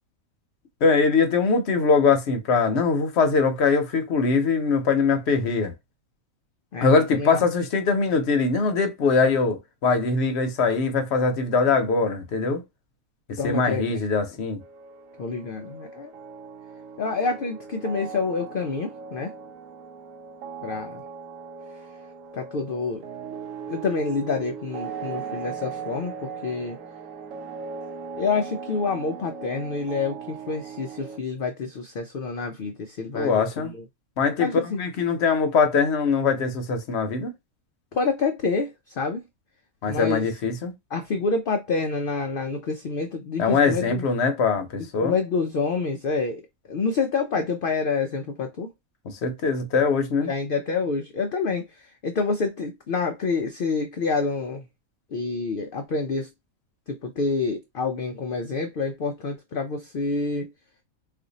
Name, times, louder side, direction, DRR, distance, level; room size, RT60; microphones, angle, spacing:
voice 1, 0.8-5.7 6.8-12.6 13.3-14.6 33.1-33.7 34.2-37.3 39.8-40.7 43.4-45.2 49.0-50.3, left 4 dB, 55° left, 0.9 m, -22 dB
voice 2, 6.7-7.4 13.4-14.0 15.2-16.1 17.0-19.3 20.6-21.0 22.3-23.0 23.7-26.8 28.1-33.8 34.4-34.8 37.9-39.2 39.9-40.3 40.9-44.0 45.0-46.4 46.7-48.7 50.2-54.6 55.1-56.3 56.9-60.5, left 4 dB, 80° left, 0.4 m, -27 dB
sound 1, 14.6-31.2, right 6 dB, 70° right, 1.0 m, -38 dB
2.5 x 2.4 x 3.9 m
omnidirectional pair, 1.5 m